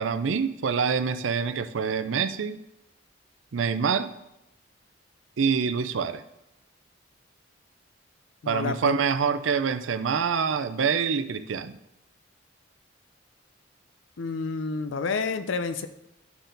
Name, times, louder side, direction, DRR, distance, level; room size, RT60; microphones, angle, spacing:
voice 1, 0.0-2.6 3.5-4.1 5.4-6.2 8.5-11.8, right 6 dB, 80° right, 12 dB, 0.5 m, -26 dB
voice 2, 8.4-9.0 14.2-15.9, left 4 dB, 75° left, 10 dB, 0.5 m, -29 dB
11.5 x 4.4 x 3.9 m, 0.89 s
head